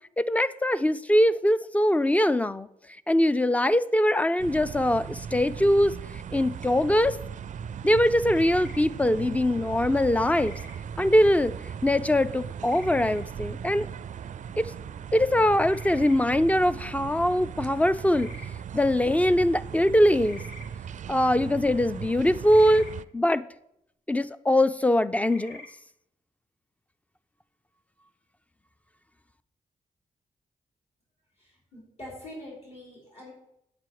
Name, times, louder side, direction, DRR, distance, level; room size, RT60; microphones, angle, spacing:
voice 1, 0.2-2.7 3.1-5.9 6.3-7.2 7.8-10.5 11.0-11.5 11.8-13.9 14.6-14.7 15.1-18.3 18.7-20.4 21.1-22.9 23.1-23.4 24.1-25.6, left 1 dB, 10° left, 0.4 m, -22 dB
sound 1, 4.4-23.0, right 8 dB, 55° right, 0.4 m, -38 dB
sound 2, 8.2-8.8 10.2-10.7 12.6-13.2 15.7-16.2 18.1-18.5 20.2-20.7 22.5-22.9 25.2-25.7, left 2 dB, 80° left, 2.0 m, -46 dB
voice 2, 31.4-33.3, left 1 dB, 45° left, 4.3 m, -44 dB
9.0 x 8.3 x 4.7 m
cardioid pair, 85°, 15 cm